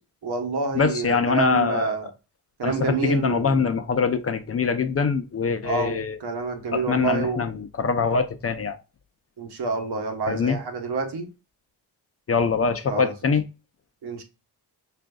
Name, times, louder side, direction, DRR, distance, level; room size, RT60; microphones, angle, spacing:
voice 1, 0.2-2.1 2.6-3.7 5.6-7.5 9.4-11.3 12.8-13.1 14.0-14.2, right 4 dB, 70° right, 1.1 m, -28 dB
voice 2, 0.8-2.0 2.6-6.2 6.7-8.8 10.3-10.6 12.3-13.4, left 5 dB, 35° left, 0.5 m, -23 dB
6.0 x 2.6 x 2.3 m
cardioid pair, 75°, 41 cm